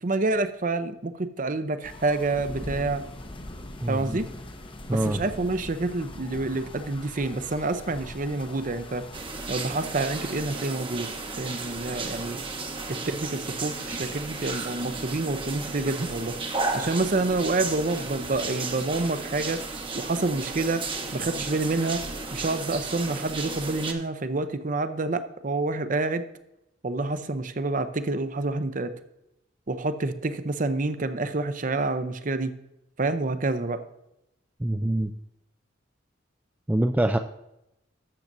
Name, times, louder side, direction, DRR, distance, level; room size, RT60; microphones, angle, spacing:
voice 1, 0.0-3.0 3.9-4.3 4.9-9.0 9.5-12.4 12.9-16.3 16.7-19.6 19.9-20.8 21.1-22.0 22.3-26.2 26.8-28.9 29.7-32.5 33.0-33.8, right 2 dB, 45° right, 10 dB, 0.7 m, -28 dB
sound 1, 1.8-9.2, left 1 dB, 25° left, 0.8 m, -41 dB
voice 2, 3.8-4.2 4.9-5.2 34.6-35.1 36.7-37.2, right 1 dB, 10° right, 6 dB, 0.3 m, -24 dB
sound 2, 9.1-23.9, right 3 dB, 25° right, 0.9 m, -34 dB
13.5 x 7.3 x 2.6 m, 0.85 s
head